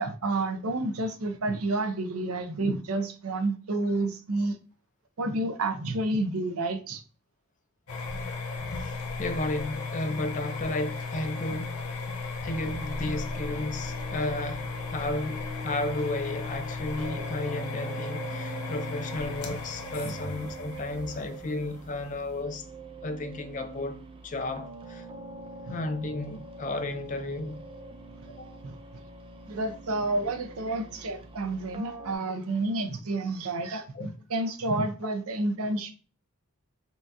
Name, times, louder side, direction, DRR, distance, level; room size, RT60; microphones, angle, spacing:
voice 1, 0.0-4.6 5.2-7.0 20.0-20.2 25.7-25.8 28.6-28.8 29.5-35.9, right 2 dB, 80° right, 0.6 m, -30 dB
sound 1, 7.9-22.4, left 4 dB, 75° left, 0.8 m, -35 dB
voice 2, 8.8-11.8 12.4-22.7 23.0-25.1 25.7-27.6 28.3-28.6 33.9-34.1, left 2 dB, 35° left, 0.4 m, -33 dB
sound 2, 12.7-32.1, right 3 dB, 25° right, 0.4 m, -45 dB
5.6 x 2.4 x 2.7 m
head